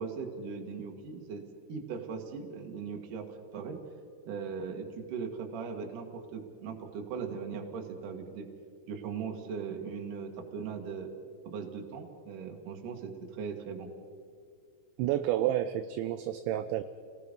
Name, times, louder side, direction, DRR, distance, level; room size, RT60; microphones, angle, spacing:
voice 1, 0.0-1.4 1.7-3.8 4.3-8.5 8.9-11.1 11.4-13.9, right 5 dB, 55° right, 3 dB, 2.8 m, -39 dB
voice 2, 15.0-16.8, right 12 dB, 80° right, 10 dB, 2.8 m, -30 dB
30.0 x 19.0 x 5.4 m, 2.3 s
omnidirectional pair, 5.7 m